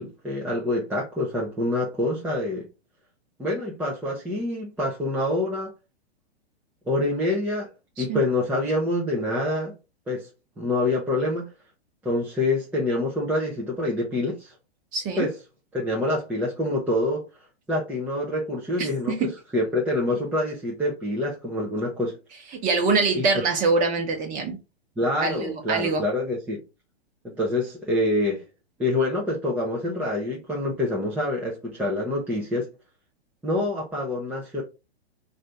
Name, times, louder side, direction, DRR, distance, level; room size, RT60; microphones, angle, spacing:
voice 1, 0.0-2.7 3.4-5.7 6.9-7.7 8.0-9.7 10.1-10.3 10.6-11.5 12.0-14.5 15.2-15.4 15.7-17.2 17.7-22.2 23.2-23.3 25.0-26.6 27.2-28.4 28.8-32.7 33.4-34.6, left 1 dB, 5° right, 0.7 m, -26 dB
voice 2, 14.9-15.3 18.8-19.3 22.6-24.6 25.2-26.0, right 4 dB, 25° right, 1.2 m, -24 dB
3.2 x 2.7 x 4.4 m
hypercardioid pair, 125°, 32 cm